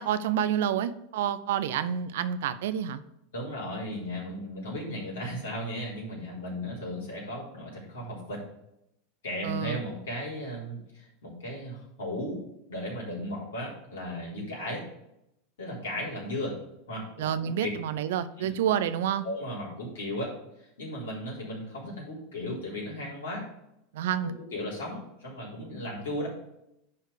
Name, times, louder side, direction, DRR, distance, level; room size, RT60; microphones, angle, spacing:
voice 1, 0.0-3.0 9.4-9.8 17.2-19.2 23.9-24.3, right 9 dB, 60° right, 13 dB, 0.5 m, -28 dB
voice 2, 3.3-8.4 9.2-12.4 12.7-14.8 15.6-16.5 16.9-17.7 18.4-18.5 19.2-20.3 20.8-23.4 24.2-26.3, left 1 dB, 65° left, -4 dB, 3.9 m, -36 dB
10.5 x 4.5 x 5.0 m, 0.82 s
figure-of-eight pair, 85°, 0 cm